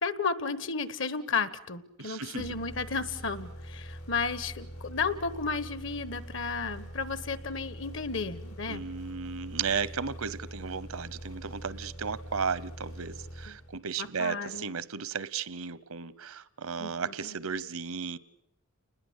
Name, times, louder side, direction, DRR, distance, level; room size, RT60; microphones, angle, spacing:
voice 1, 0.0-8.8 13.5-13.6 14.0-14.7 16.8-17.4, left 4 dB, 60° left, 1.3 m, -33 dB
voice 2, 2.0-2.6 8.7-18.2, right 6 dB, 80° right, 0.9 m, -34 dB
sound 1, 2.4-14.1, equal, 85° left, 4.9 m, -44 dB
29.5 x 20.5 x 8.2 m
head